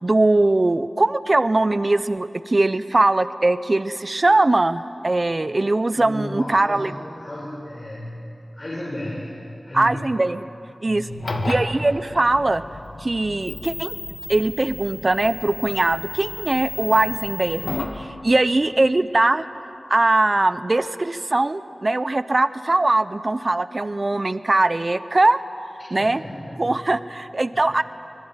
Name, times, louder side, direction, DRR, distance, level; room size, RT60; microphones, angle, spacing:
voice 1, 0.0-6.9 9.7-10.4 10.8-11.1 11.4-12.6 13.0-14.0 14.3-19.4 19.9-25.4 25.9-26.2 26.6-27.8, right 2 dB, 40° right, 13 dB, 0.7 m, -21 dB
voice 2, 5.9-8.2 8.5-10.0 10.9-11.6 25.8-26.7 27.5-27.8, left 1 dB, 35° left, -6 dB, 5.9 m, -34 dB
sound 1, 11.1-18.0, left 2 dB, 80° left, 2.1 m, -33 dB
24.5 x 21.0 x 9.0 m, 2.7 s
wide cardioid pair, 75°, 0 cm